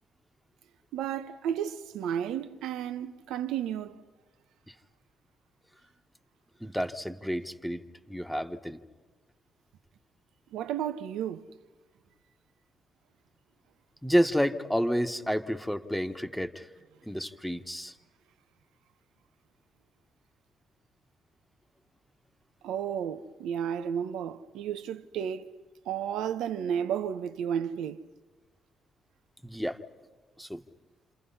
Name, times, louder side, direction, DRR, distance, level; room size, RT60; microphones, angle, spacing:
voice 1, 0.9-4.0 10.5-11.5 22.6-25.4 25.9-28.0, right 9 dB, 90° right, 1.0 m, -32 dB
voice 2, 6.6-7.8 8.1-8.8 14.0-16.7 17.0-17.9 29.4-29.8 30.4-30.6, equal, ahead, 1.4 m, -30 dB
28.5 x 27.5 x 5.7 m
cardioid pair, 90°, 0 cm